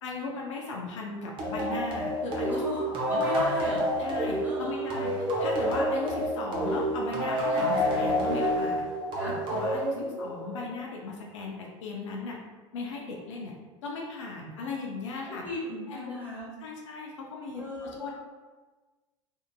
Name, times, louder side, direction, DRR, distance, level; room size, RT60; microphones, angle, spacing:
voice 1, 0.0-3.2 4.0-5.1 5.4-8.9 9.2-12.4 12.7-13.5 13.8-15.4 15.9-16.1 16.6-18.1, left 3 dB, 70° left, -1 dB, 0.5 m, -37 dB
sound 1, 1.4-10.6, equal, 30° right, 0.7 m, -28 dB
voice 2, 2.5-3.8 4.4-5.1 9.2-9.4 9.9-10.7 15.4-16.5 17.6-18.1, left 1 dB, 10° right, -8 dB, 1.5 m, -37 dB
2.7 x 2.4 x 2.2 m, 1.3 s
figure-of-eight pair, 80°, 16 cm